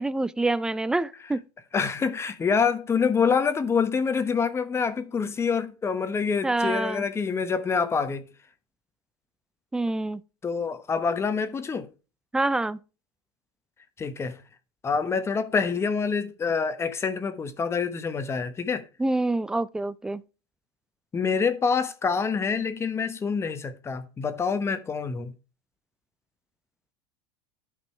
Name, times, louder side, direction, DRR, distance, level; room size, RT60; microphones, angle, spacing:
voice 1, 0.0-1.4 6.4-7.1 9.7-10.2 12.3-12.8 19.0-20.2, right 2 dB, 5° right, 0.4 m, -26 dB
voice 2, 1.7-8.3 10.4-11.9 14.0-14.4 14.8-18.8 21.1-25.3, left 5 dB, 20° left, 1.0 m, -26 dB
11.5 x 5.2 x 3.2 m
supercardioid pair, 115°, 12 cm